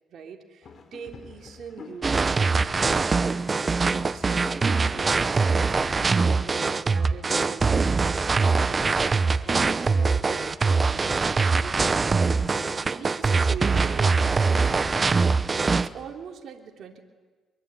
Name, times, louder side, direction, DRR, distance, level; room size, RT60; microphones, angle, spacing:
voice 1, 0.1-3.1 3.8-11.8 12.8-15.2 15.7-17.0, right 7 dB, 65° right, 1 dB, 3.4 m, -42 dB
sound 1, 0.6-15.4, left 5 dB, 50° left, 3.9 m, -50 dB
sound 2, 2.0-15.9, right 4 dB, 30° right, 0.9 m, -23 dB
24.0 x 23.5 x 9.1 m, 1.4 s
cardioid pair, 90°, 0 cm